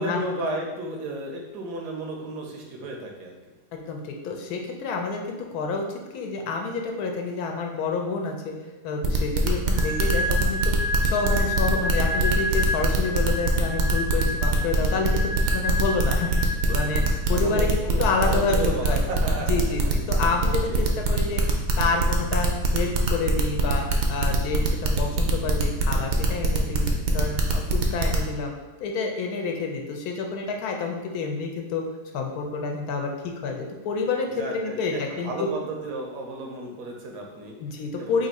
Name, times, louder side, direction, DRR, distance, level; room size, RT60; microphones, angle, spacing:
voice 1, 0.0-3.4 17.3-19.8 20.7-21.1 34.4-37.5 38.0-38.3, right 2 dB, 85° right, 1 dB, 1.3 m, -33 dB
voice 2, 3.7-5.8 6.1-8.5 8.8-19.0 19.5-28.5 28.8-31.8 32.1-35.5 37.6-38.3, left 4 dB, 75° left, 2 dB, 1.1 m, -29 dB
sound 1, 9.0-28.3, right 4 dB, 65° right, 0.7 m, -23 dB
sound 2, 9.8-17.4, equal, 50° left, 0.7 m, -30 dB
3.4 x 2.6 x 4.0 m, 1.3 s
omnidirectional pair, 1.7 m